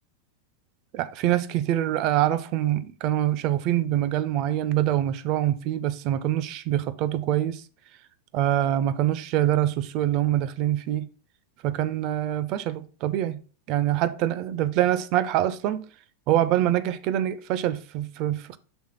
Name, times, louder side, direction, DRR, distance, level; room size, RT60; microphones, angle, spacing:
voice 1, 0.9-7.6 8.3-11.1 11.6-13.4 13.7-15.8 16.3-18.6, right 12 dB, 40° right, 0.5 m, -25 dB
6.3 x 3.6 x 5.5 m
figure-of-eight pair, 90°, 0 cm